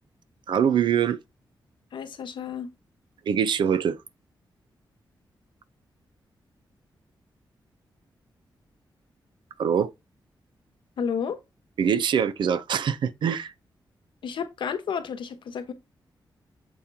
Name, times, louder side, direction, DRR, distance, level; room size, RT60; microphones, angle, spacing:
voice 1, 0.5-1.2 3.3-4.0 9.6-9.9 11.8-13.5, right 8 dB, 75° right, 0.5 m, -23 dB
voice 2, 1.9-2.7 11.0-11.4 14.2-15.7, left 7 dB, 90° left, 1.0 m, -31 dB
7.1 x 4.4 x 3.4 m
wide cardioid pair, 165°, 8 cm